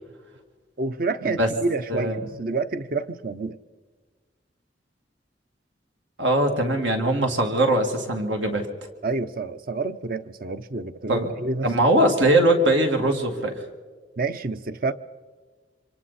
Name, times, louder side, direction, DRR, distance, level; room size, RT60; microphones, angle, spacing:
voice 1, 0.8-3.6 9.0-11.7 14.2-14.9, right 3 dB, 50° right, 0.7 m, -28 dB
voice 2, 1.9-2.3 6.2-8.7 11.1-11.3 11.6-13.5, right 1 dB, 85° right, 2.6 m, -21 dB
28.0 x 25.0 x 4.3 m
head